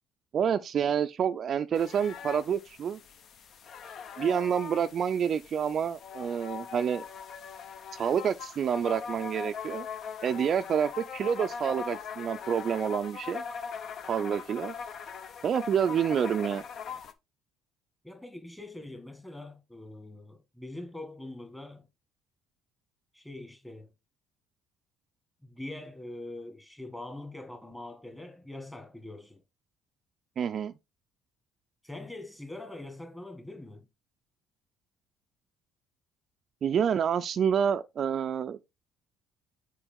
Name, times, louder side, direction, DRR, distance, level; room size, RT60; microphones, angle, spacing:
voice 1, 0.3-3.0 4.2-7.0 7.9-9.9 10.2-13.4 14.1-14.7 15.4-16.6 30.4-30.7 36.6-38.6, right 8 dB, 50° right, 0.4 m, -28 dB
sound 1, 1.7-17.1, left 6 dB, 55° left, 0.7 m, -41 dB
voice 2, 18.0-21.8 23.1-23.9 25.4-29.4 31.8-33.9, left 2 dB, 10° left, 1.8 m, -43 dB
7.0 x 4.6 x 3.5 m
supercardioid pair, 90°, 0 cm